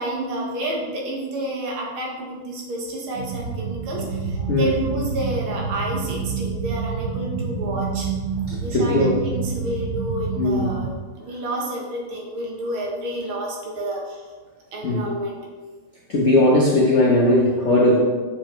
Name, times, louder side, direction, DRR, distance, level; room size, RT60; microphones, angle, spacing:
voice 1, 0.0-8.1 8.5-14.2 14.7-15.4, right 1 dB, 80° right, -1 dB, 2.0 m, -30 dB
sound 1, 3.1-10.9, right 5 dB, 60° right, 1.0 m, -28 dB
voice 2, 8.5-9.2 10.4-10.7 14.8-15.0 16.1-18.0, left 1 dB, 70° left, -3 dB, 0.6 m, -18 dB
6.9 x 4.9 x 3.0 m, 1.4 s
omnidirectional pair, 2.3 m